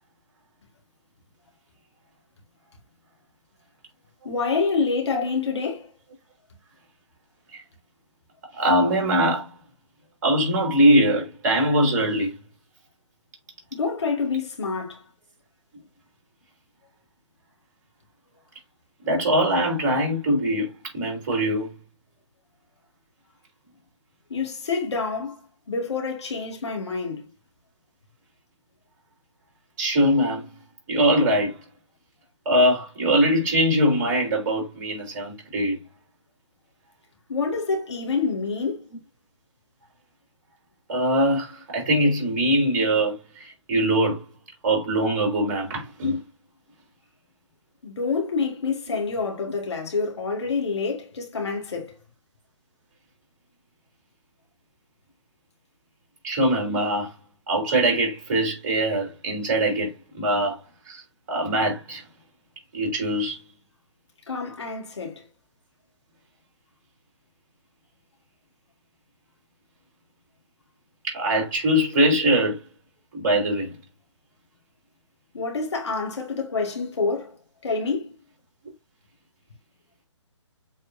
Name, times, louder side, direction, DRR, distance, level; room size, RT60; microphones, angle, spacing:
voice 1, 4.2-5.9 13.7-15.0 24.3-25.4 25.7-27.2 37.3-38.9 47.8-52.0 64.3-65.2 75.3-77.4 77.6-78.1, left 4 dB, 60° left, 2.6 m, -27 dB
voice 2, 8.5-9.5 10.2-12.4 19.0-20.7 20.9-21.7 29.8-30.4 30.9-31.5 32.4-35.8 40.9-44.2 44.6-46.2 56.2-57.1 57.5-60.6 60.9-61.0 61.3-62.0 62.7-63.4 71.0-72.6 73.1-73.7, right 1 dB, 35° right, 4.4 m, -22 dB
7.7 x 4.5 x 2.8 m
figure-of-eight pair, 140°, 16 cm